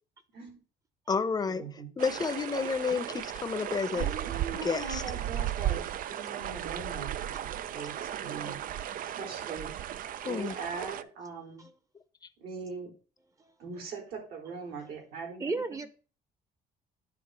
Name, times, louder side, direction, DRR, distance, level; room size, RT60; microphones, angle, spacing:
voice 1, 1.1-1.6 2.0-4.0 4.6-5.0 10.2-10.5, left 5 dB, 25° left, 0.7 m, -30 dB
sound 1, 2.0-11.0, right 11 dB, 55° right, 0.5 m, -35 dB
voice 2, 3.9-8.9 9.2-9.7 10.3-11.6 12.4-12.9 13.6-15.8, right 5 dB, 75° right, 3.9 m, -41 dB
voice 3, 7.9-8.6 10.2-10.3 11.6-11.7 13.4-13.5 15.4-15.9, right 3 dB, 20° right, 0.9 m, -37 dB
9.7 x 3.8 x 5.7 m
cardioid pair, 110°, 17 cm